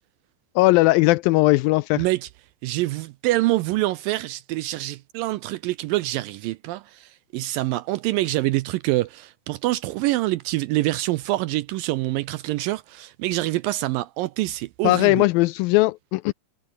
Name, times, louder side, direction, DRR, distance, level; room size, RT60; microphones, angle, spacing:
voice 1, 0.6-2.1 14.8-16.3, left 20 dB, 85° left, 2.1 m, -18 dB
voice 2, 2.0-2.3 2.6-15.3, right 18 dB, 80° right, 2.1 m, -25 dB
omnidirectional pair, 4.5 m